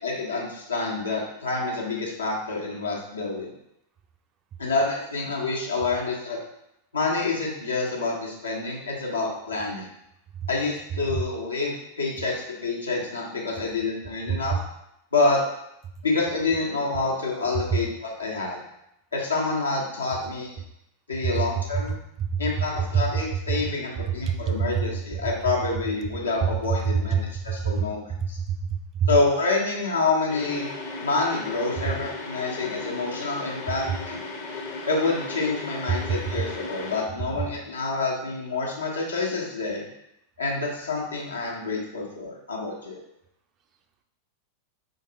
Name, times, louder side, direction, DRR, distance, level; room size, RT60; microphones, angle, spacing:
voice 1, 0.0-3.5 4.6-6.4 6.9-9.9 10.5-14.6 15.1-15.4 16.0-18.6 19.1-20.6 21.1-21.9 22.4-28.4 29.1-30.7 31.0-34.2 34.9-39.8 40.4-43.0, left 3 dB, 75° left, -3 dB, 1.1 m, -27 dB
voice 2, 24.3-24.7 27.6-27.8 28.5-29.1 35.9-36.0, right 7 dB, 30° right, 5 dB, 0.4 m, -25 dB
sound 1, 30.3-37.0, left 3 dB, 45° left, 0.9 m, -36 dB
5.0 x 3.1 x 2.8 m, 0.79 s
figure-of-eight pair, 90°, 0 cm